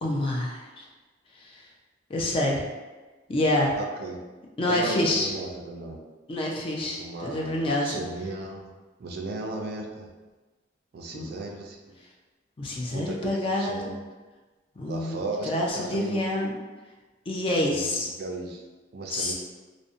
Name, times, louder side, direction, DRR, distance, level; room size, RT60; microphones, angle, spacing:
voice 1, 0.0-0.9 1.4-1.6 2.1-2.6 3.3-3.8 4.6-5.3 6.3-8.0 11.1-11.3 12.6-13.9 14.8-16.5 17.3-18.1 19.1-19.3, left 1 dB, 30° left, -1 dB, 0.3 m, -27 dB
voice 2, 3.8-4.2 4.7-6.0 7.0-8.7 9.0-10.1 10.9-11.9 12.9-14.0 14.8-16.2 17.6-17.9 18.2-18.6 18.9-19.3, right 2 dB, 55° right, 1 dB, 0.3 m, -35 dB
2.5 x 2.0 x 2.5 m, 1.2 s
head